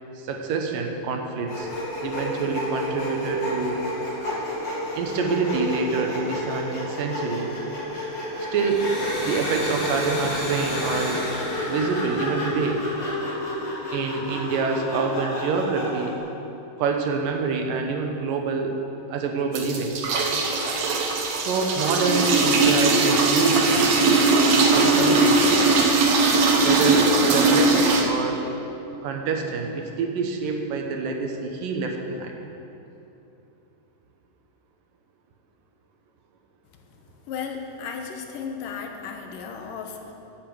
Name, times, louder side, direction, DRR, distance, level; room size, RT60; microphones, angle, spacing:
voice 1, 0.2-1.7 2.0-3.8 4.9-7.5 8.5-8.9 9.2-11.2 11.7-12.8 13.9-16.2 16.8-18.8 19.1-20.0 21.4-25.4 26.6-28.4 29.0-32.4, right 4 dB, 75° right, 3 dB, 2.7 m, -26 dB
Sawing, 1.5-16.2, left 1 dB, 45° left, 3.8 m, -31 dB
Domestic sounds home sounds, 8.5-13.0, left 1 dB, 30° left, 3.4 m, -33 dB
sound 1, 19.5-28.0, right 3 dB, 60° right, 1.8 m, -19 dB
voice 2, 37.3-40.1, left 6 dB, 75° left, 3 dB, 2.6 m, -34 dB
11.0 x 9.1 x 7.7 m, 2.9 s
omnidirectional pair, 4.0 m